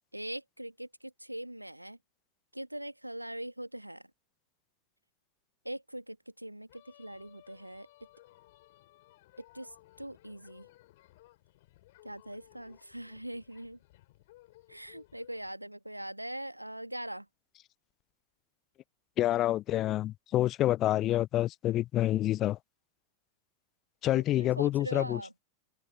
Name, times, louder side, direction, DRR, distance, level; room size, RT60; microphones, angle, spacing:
voice 1, 0.1-2.0 2.5-4.1 5.6-7.9 9.5-10.7 12.0-13.8 14.7-17.3 24.1-25.3, right 1 dB, 90° right, 1.6 m, -42 dB
sound 1, 6.7-15.5, left 18 dB, 55° left, 7.5 m, -60 dB
voice 2, 19.2-22.6 24.0-25.2, left 14 dB, 35° left, 0.5 m, -27 dB
open air
figure-of-eight pair, 90°, 0 cm